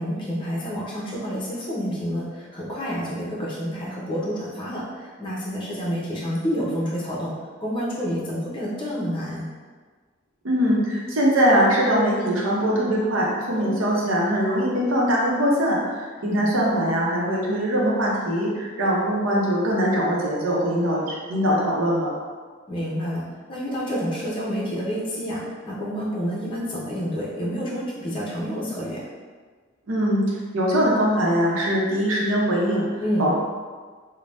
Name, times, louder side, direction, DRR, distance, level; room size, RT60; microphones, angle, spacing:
voice 1, 0.0-7.3 7.6-9.5 13.5-13.8 16.2-16.5 22.7-23.2 23.5-29.0 33.0-33.3, equal, 25° left, -6 dB, 0.6 m, -29 dB
voice 2, 10.4-22.1 29.9-30.2 30.5-32.9 33.2-33.3, equal, 85° right, -4 dB, 0.7 m, -22 dB
2.6 x 2.1 x 3.3 m, 1.5 s
head